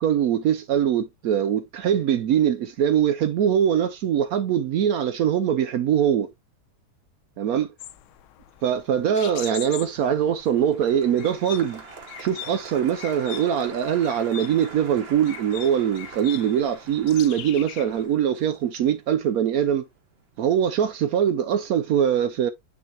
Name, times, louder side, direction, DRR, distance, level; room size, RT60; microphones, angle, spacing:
voice 1, 0.0-6.3 7.4-7.7 8.6-11.8 12.2-19.9 20.4-22.5, right 9 dB, 85° right, 0.8 m, -22 dB
sound 1, 7.8-18.1, left 13 dB, 85° left, 1.5 m, -42 dB
Applause, 9.9-20.2 20.5-21.1, right 4 dB, 35° right, 1.2 m, -45 dB
9.6 x 4.0 x 2.8 m
omnidirectional pair, 2.2 m